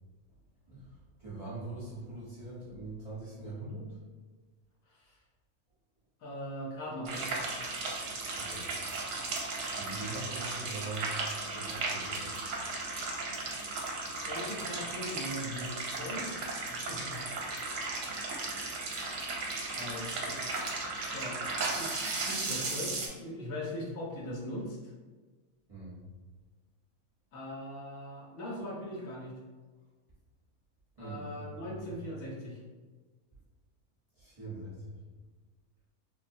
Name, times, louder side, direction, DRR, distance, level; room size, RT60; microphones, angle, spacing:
voice 1, 0.7-4.0 8.4-8.7 9.8-11.1 11.5-12.4 25.7-26.0 31.0-31.9 34.2-35.0, right 2 dB, 30° right, -10 dB, 0.8 m, -42 dB
voice 2, 4.9-5.2 6.2-7.3 14.2-17.2 19.7-20.5 20.9-21.4 21.7-24.9 27.3-29.3 31.0-32.6, left 1 dB, 75° left, -3 dB, 1.1 m, -40 dB
sound 1, 7.1-23.1, right 3 dB, 65° right, 0.9 m, -36 dB
3.9 x 2.0 x 2.6 m, 1.3 s
omnidirectional pair, 1.6 m